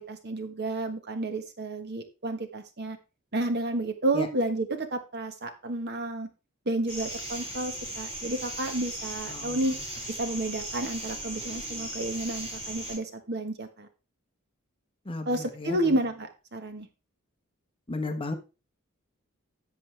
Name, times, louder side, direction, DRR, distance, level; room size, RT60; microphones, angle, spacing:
voice 1, 0.0-3.0 3.3-6.3 6.6-9.8 10.1-13.9 15.2-16.9, right 2 dB, 50° right, 7 dB, 1.3 m, -31 dB
sound 1, 6.9-13.0, right 1 dB, 25° right, 4.9 m, -37 dB
voice 2, 9.3-9.6 15.0-15.9 17.9-18.3, left 2 dB, 25° left, 5 dB, 1.2 m, -34 dB
10.5 x 7.4 x 3.3 m, 0.30 s
head